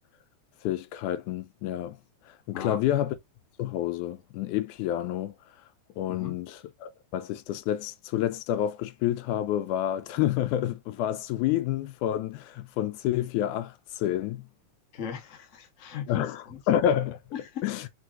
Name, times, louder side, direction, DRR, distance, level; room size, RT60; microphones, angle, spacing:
voice 1, 0.6-2.0 2.3-3.2 3.6-5.4 6.0-14.5 16.1-17.2 17.6-17.8, left 11 dB, 90° left, 2.1 m, -29 dB
voice 2, 14.9-16.6 17.3-17.6, left 8 dB, 60° left, 0.7 m, -38 dB
4.6 x 4.3 x 2.5 m
omnidirectional pair, 3.5 m